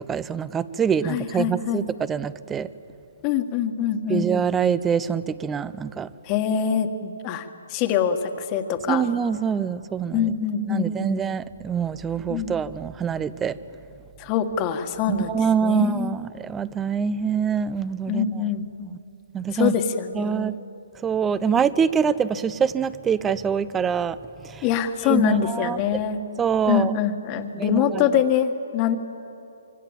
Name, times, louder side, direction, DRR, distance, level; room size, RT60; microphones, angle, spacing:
voice 1, 0.0-2.7 4.1-6.1 8.9-10.3 10.7-13.6 15.1-18.4 18.9-19.0 19.3-19.7 20.1-20.6 21.0-24.2 24.4-24.6 25.0-26.0 26.4-26.9 27.5-28.0, right 7 dB, 10° right, 17 dB, 0.6 m, -25 dB
voice 2, 1.0-1.9 3.2-4.3 6.2-9.0 10.1-11.1 12.3-12.5 14.2-16.1 18.1-18.9 19.5-20.5 24.6-26.2 26.7-29.0, left 8 dB, 25° left, 7 dB, 1.6 m, -24 dB
25.5 x 24.0 x 7.4 m, 2.9 s
hypercardioid pair, 150°, 0 cm